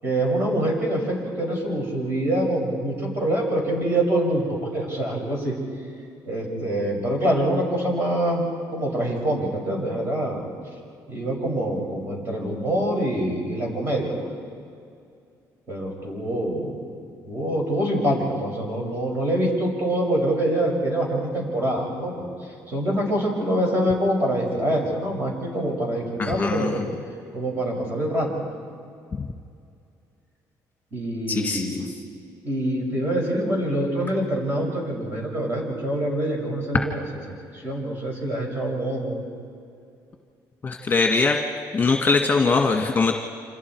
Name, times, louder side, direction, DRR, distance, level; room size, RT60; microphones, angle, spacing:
voice 1, 0.0-5.6 6.2-8.4 8.7-10.5 11.1-14.3 15.7-16.8 17.3-22.3 22.7-26.8 27.3-28.5 30.9-31.8 32.4-37.0 37.5-39.2, right 1 dB, 30° right, -1 dB, 6.8 m, -25 dB
voice 2, 26.2-26.9 29.2-29.3 31.3-31.8 40.6-41.4 41.7-43.2, left 4 dB, 25° left, 2 dB, 1.7 m, -22 dB
28.5 x 27.0 x 4.7 m, 2.4 s
cardioid pair, 125°, 7 cm